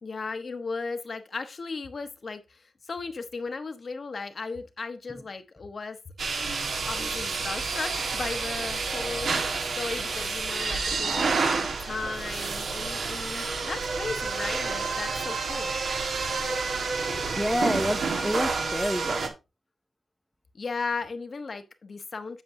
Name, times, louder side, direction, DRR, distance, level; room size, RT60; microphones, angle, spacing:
voice 1, 0.0-6.0 6.9-9.4 9.8-15.7 20.5-22.4, left 4 dB, 45° left, 1.0 m, -36 dB
sound 1, 6.2-19.3, right 4 dB, 70° right, 1.5 m, -29 dB
voice 2, 17.1-19.3, equal, ahead, 0.6 m, -28 dB
8.2 x 7.6 x 2.6 m
wide cardioid pair, 95°, 0 cm